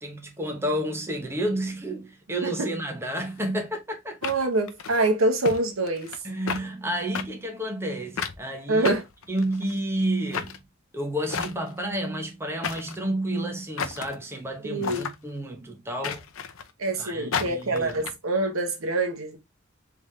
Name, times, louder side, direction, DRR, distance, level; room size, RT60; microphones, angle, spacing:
voice 1, 0.0-4.2 6.2-9.0 9.3-10.6 10.9-16.2 17.0-18.0, right 1 dB, 10° right, 0.9 m, -30 dB
sound 1, 3.3-3.4 4.2-5.0 5.4-5.6 5.9-6.2 6.5-6.6 7.1-7.3 8.2-8.4 8.8-9.7 10.3-10.6 11.3-11.8 12.6-13.0 13.8-14.1 14.8-15.2 16.0-16.7 17.3-18.1, left 6 dB, 75° left, 0.6 m, -32 dB
voice 2, 4.2-6.1 8.7-9.0 14.6-15.1 16.8-19.4, right 2 dB, 80° right, 1.1 m, -25 dB
3.6 x 3.5 x 3.1 m
head